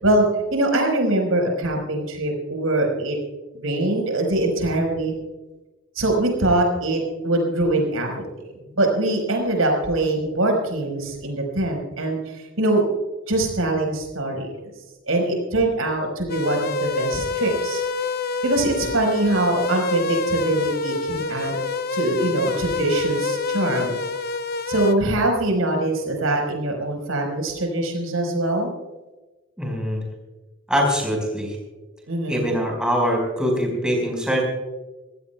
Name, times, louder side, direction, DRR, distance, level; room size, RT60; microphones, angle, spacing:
voice 1, 0.0-3.2 3.6-5.1 6.0-8.2 8.7-12.8 13.3-14.5 15.1-17.8 18.4-21.6 21.9-24.0 24.7-28.7 32.1-32.5, right 2 dB, 85° right, 2 dB, 4.9 m, -23 dB
sound 1, 16.3-24.9, left 4 dB, 50° left, 0.7 m, -27 dB
voice 2, 29.6-30.0 30.7-31.6 32.3-34.4, equal, 5° right, 0 dB, 5.0 m, -23 dB
25.0 x 16.5 x 2.3 m, 1.2 s
head